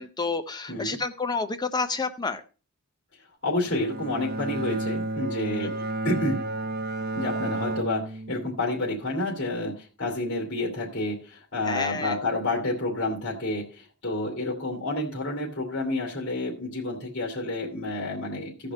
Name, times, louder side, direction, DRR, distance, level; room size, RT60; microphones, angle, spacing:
voice 1, 0.0-2.4 11.7-12.1, left 4 dB, 20° left, 9 dB, 0.5 m, -29 dB
voice 2, 0.7-1.0 3.4-5.8 6.0-6.5 7.1-18.7, left 2 dB, 50° left, -2 dB, 2.7 m, -29 dB
Bowed string instrument, 3.6-8.9, right 2 dB, 45° right, 0.9 m, -32 dB
15.0 x 5.1 x 5.3 m, 0.36 s
head